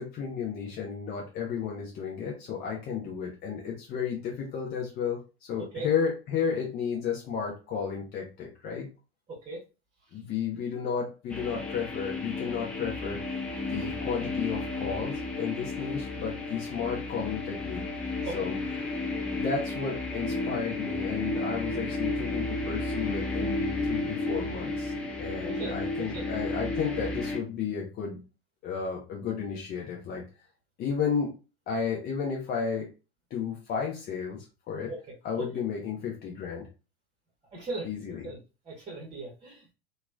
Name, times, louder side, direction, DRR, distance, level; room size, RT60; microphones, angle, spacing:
voice 1, 0.0-8.9 10.1-13.4 13.7-17.8 18.3-18.5 18.9-19.0 19.3-24.9 25.2-28.2 28.6-30.2 30.8-31.3 31.7-32.9 33.3-34.9 35.2-36.7 37.8-38.3, left 6 dB, 30° left, -1 dB, 0.7 m, -33 dB
voice 2, 9.3-9.6 13.5-13.9 18.2-18.3 25.4-25.8 26.1-26.3 34.9-35.0 35.4-35.5 37.5-37.9 38.2-38.4 38.6-39.7, right 3 dB, 20° right, -2 dB, 1.0 m, -38 dB
sound 1, 11.3-27.4, left 2 dB, 5° left, 0.3 m, -33 dB
3.0 x 2.3 x 2.4 m, 0.30 s
figure-of-eight pair, 85°, 32 cm